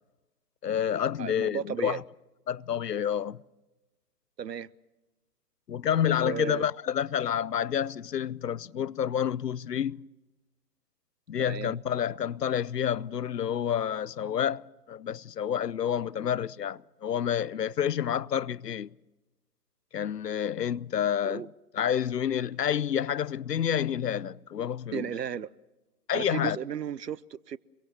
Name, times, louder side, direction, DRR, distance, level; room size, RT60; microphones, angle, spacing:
voice 1, 0.6-2.0 2.5-3.4 5.7-10.0 11.3-14.6 14.9-18.9 19.9-21.5 21.7-25.1 26.1-26.6, left 9 dB, 75° left, 0.8 m, -29 dB
voice 2, 1.2-2.0 4.4-4.7 6.0-6.7 11.4-11.7 21.2-21.5 24.9-25.5 26.1-27.6, right 8 dB, 75° right, 0.9 m, -34 dB
26.5 x 23.0 x 7.4 m
figure-of-eight pair, 130°, 49 cm